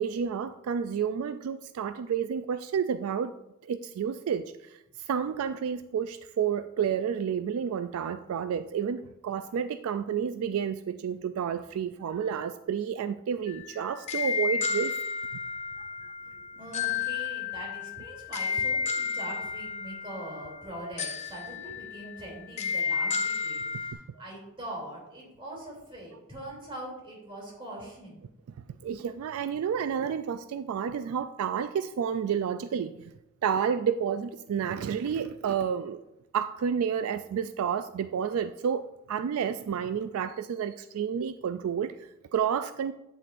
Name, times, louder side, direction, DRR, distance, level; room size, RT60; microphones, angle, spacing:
voice 1, 0.0-3.3 3.6-14.9 28.8-33.1 33.4-36.0 36.3-42.9, right 7 dB, 75° right, 12 dB, 0.3 m, -30 dB
sound 1, 13.5-23.9, left 5 dB, 30° left, 0.5 m, -32 dB
voice 2, 16.3-28.3, right 1 dB, 25° right, -3 dB, 2.9 m, -42 dB
8.9 x 7.6 x 2.5 m, 0.90 s
head